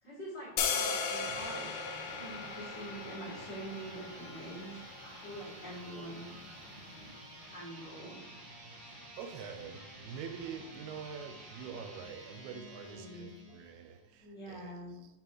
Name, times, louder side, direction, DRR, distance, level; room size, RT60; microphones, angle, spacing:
voice 1, 0.0-1.8 2.1-6.3 7.4-8.2 12.8-13.3 14.2-15.0, right 1 dB, 35° left, -9 dB, 2.0 m, -45 dB
sound 1, 0.6-6.7, left 5 dB, 80° left, 1.9 m, -38 dB
sound 2, 1.2-14.0, right 1 dB, 55° right, 2.7 m, -51 dB
voice 2, 8.9-14.7, right 6 dB, 85° right, 6 dB, 2.5 m, -45 dB
8.8 x 3.8 x 3.0 m, 0.90 s
omnidirectional pair, 4.4 m